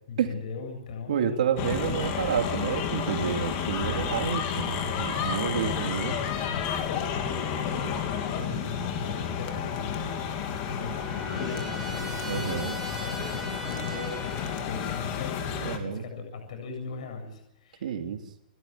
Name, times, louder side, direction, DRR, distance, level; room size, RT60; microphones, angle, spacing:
voice 1, 0.1-1.4 4.1-5.8 6.2-18.0, left 4 dB, 55° left, 4 dB, 8.0 m, -39 dB
voice 2, 1.1-6.1 12.2-12.8 15.6-16.0 17.8-18.2, right 8 dB, 65° right, 4 dB, 3.1 m, -29 dB
sound 1, 1.6-15.8, left 7 dB, 30° left, 3.5 m, -31 dB
Trumpet, 10.0-14.8, right 3 dB, 5° right, 6.6 m, -41 dB
30.0 x 16.0 x 9.6 m, 0.81 s
hypercardioid pair, 175°, 4 cm